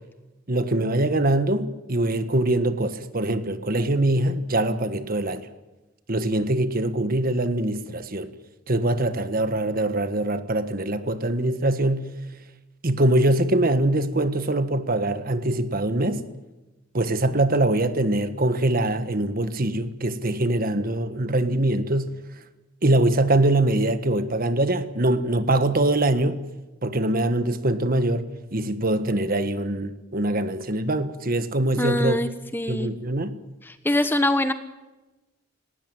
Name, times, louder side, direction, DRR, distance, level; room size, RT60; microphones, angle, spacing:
voice 1, 0.5-5.5 6.1-8.3 8.7-12.1 12.8-16.3 16.9-22.1 22.8-26.4 26.8-32.2 32.7-33.4, right 1 dB, 45° right, 1.5 m, -23 dB
voice 2, 31.8-32.9 33.7-34.5, left 1 dB, 10° left, 1.1 m, -24 dB
19.0 x 19.0 x 9.0 m
head